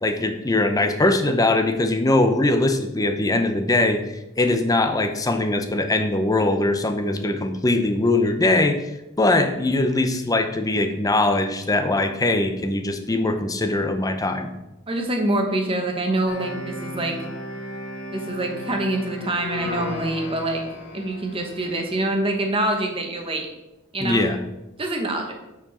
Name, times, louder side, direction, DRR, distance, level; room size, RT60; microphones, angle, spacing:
voice 1, 0.0-4.0 4.4-8.8 9.2-14.5 24.0-24.4, left 2 dB, 15° left, 7 dB, 0.6 m, -21 dB
voice 2, 14.9-17.2 18.1-20.6 20.9-23.5 23.9-24.2 24.8-25.3, right 1 dB, 25° right, 2 dB, 1.1 m, -25 dB
sound 1, 16.3-22.2, left 1 dB, 65° left, 1.6 m, -35 dB
8.3 x 4.6 x 4.2 m, 0.94 s
head